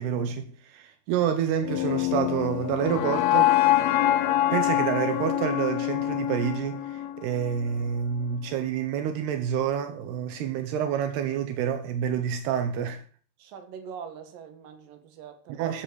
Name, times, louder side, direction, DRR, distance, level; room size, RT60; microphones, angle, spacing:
voice 1, 0.0-3.5 4.5-13.0 15.6-15.8, right 8 dB, 85° right, 3.3 m, -28 dB
sound 1, 1.6-7.7, left 13 dB, 75° left, 2.8 m, -25 dB
voice 2, 13.4-15.7, right 7 dB, 60° right, 3.5 m, -43 dB
14.0 x 8.8 x 6.4 m
omnidirectional pair, 4.6 m